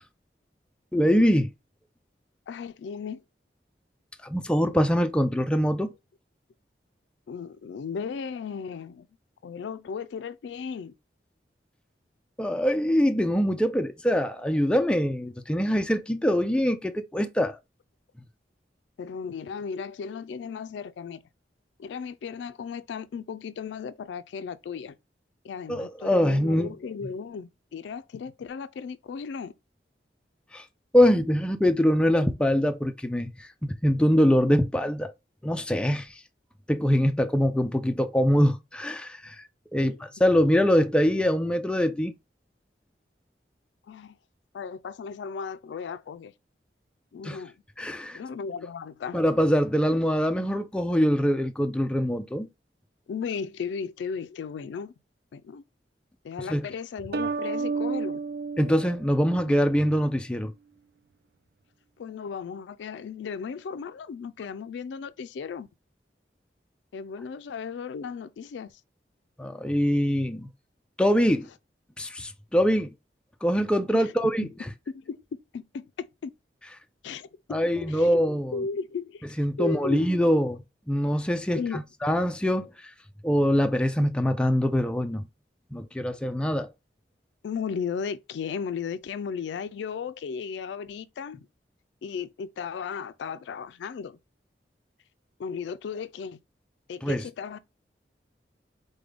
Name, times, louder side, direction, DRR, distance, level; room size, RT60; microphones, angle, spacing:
voice 1, 0.9-1.5 4.2-5.9 12.4-17.6 25.7-26.7 30.5-30.6 30.9-35.1 35.4-36.1 36.7-39.4 39.7-39.9 40.2-42.1 47.2-47.4 47.8-48.2 49.1-52.5 56.5-56.7 58.6-60.5 69.4-70.5 71.0-71.5 72.0-72.9 73.4-74.7 77.5-78.6 79.4-80.6 80.9-82.7 83.2-85.2 85.7-86.7 97.0-97.2, equal, 5° left, 0.3 m, -23 dB
voice 2, 2.5-3.2 7.3-9.1 9.4-10.9 19.0-21.2 21.8-25.0 25.4-29.5 39.8-40.0 43.9-44.2 44.5-46.3 47.1-47.6 48.1-49.2 53.1-54.9 55.3-55.6 56.2-58.2 62.0-65.7 66.9-68.7 73.9-74.1 74.9-76.3 77.0-78.1 78.5-80.1 81.5-81.8 87.4-91.5 92.0-94.2 95.4-96.4 96.9-97.6, left 6 dB, 85° left, 0.3 m, -35 dB
sound 1, 57.1-59.8, right 4 dB, 65° right, 0.4 m, -31 dB
4.9 x 2.2 x 3.3 m
head